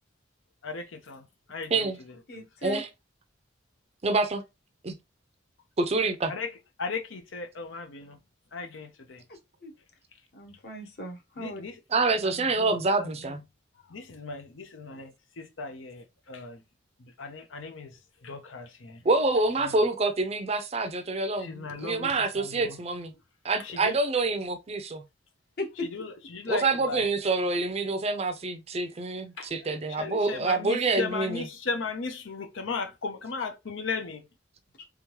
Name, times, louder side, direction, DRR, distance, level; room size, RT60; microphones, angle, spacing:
voice 1, 0.6-1.2 1.5-1.9 2.3-2.4 6.3-6.5 6.8-8.2 8.5-9.2 11.4-11.8 12.2-13.1 13.9-16.6 17.0-18.0 18.2-19.0 19.6-19.8 21.4-22.8 23.6-23.9 25.8-27.0 29.4-29.5 30.0-34.3, left 4 dB, 85° left, 0.8 m, -36 dB
voice 2, 2.3-2.8 9.6-9.7 10.3-11.6 25.6-25.9, left 1 dB, 55° left, 1.1 m, -37 dB
voice 3, 4.0-4.4 4.8-4.9 5.8-6.3 11.9-13.4 19.0-23.1 23.4-25.0 26.5-31.5, right 3 dB, 30° right, 0.5 m, -27 dB
3.6 x 3.5 x 3.0 m
head